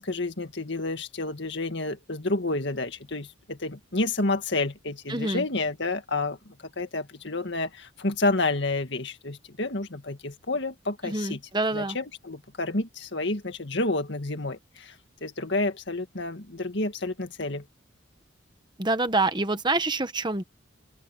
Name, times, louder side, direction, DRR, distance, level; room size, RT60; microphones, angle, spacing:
voice 1, 0.0-11.4 11.7-15.0 15.2-17.6, left 2 dB, 55° left, 2.0 m, -30 dB
voice 2, 5.1-5.4 11.0-12.0 18.8-20.4, right 2 dB, 20° right, 1.1 m, -26 dB
open air
head